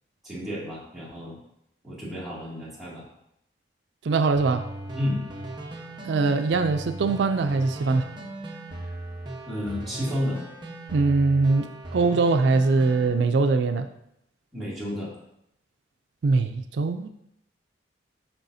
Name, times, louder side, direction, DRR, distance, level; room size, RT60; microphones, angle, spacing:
voice 1, 0.2-1.4 1.8-3.0 4.9-5.2 9.5-10.4 14.5-15.1, left 1 dB, ahead, -9 dB, 2.3 m, -31 dB
voice 2, 4.0-4.7 6.0-8.1 10.9-13.9 16.2-17.1, right 3 dB, 70° right, 8 dB, 0.4 m, -22 dB
sound 1, 4.3-13.1, right 2 dB, 25° right, 1.0 m, -38 dB
8.8 x 6.2 x 2.7 m, 0.78 s
head